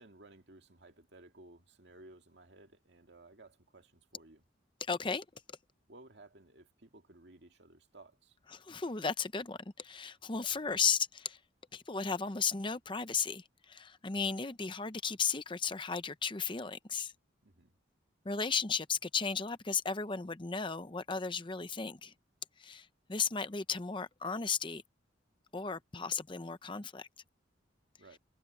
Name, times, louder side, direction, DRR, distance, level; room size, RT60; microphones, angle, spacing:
voice 1, 0.0-4.4 5.9-8.4 17.4-17.7 28.0-28.2, right 2 dB, 60° right, 2.1 m, -57 dB
voice 2, 4.8-5.6 8.5-11.4 11.7-17.1 18.2-22.1 22.6-24.8 25.5-27.1, left 5 dB, 25° left, 0.7 m, -35 dB
head